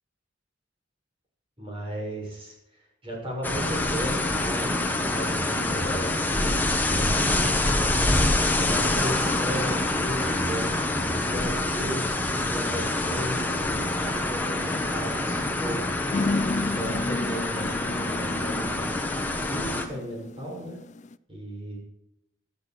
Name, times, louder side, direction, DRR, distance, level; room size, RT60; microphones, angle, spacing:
voice 1, 1.6-7.6 8.5-15.8 16.6-18.9 19.3-20.8 21.3-21.8, equal, 30° right, -2 dB, 6.7 m, -36 dB
sound 1, 3.4-19.9, left 2 dB, 10° left, 1.5 m, -26 dB
sound 2, 16.1-21.1, left 3 dB, 40° left, 0.4 m, -32 dB
14.0 x 13.0 x 4.5 m, 0.81 s
head